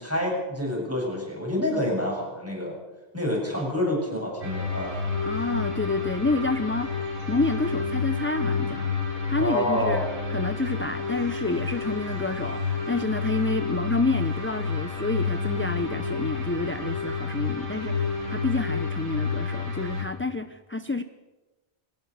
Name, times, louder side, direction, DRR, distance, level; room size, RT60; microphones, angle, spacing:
voice 1, 0.0-2.8 3.1-4.9 9.4-10.0, left 1 dB, 15° right, -2 dB, 7.7 m, -27 dB
sound 1, 4.4-20.0, left 4 dB, 85° right, 5.2 m, -29 dB
voice 2, 5.2-7.0 7.3-8.9 9.3-21.0, left 3 dB, 15° left, 10 dB, 0.4 m, -29 dB
22.0 x 18.0 x 6.7 m, 1.1 s
omnidirectional pair, 1.1 m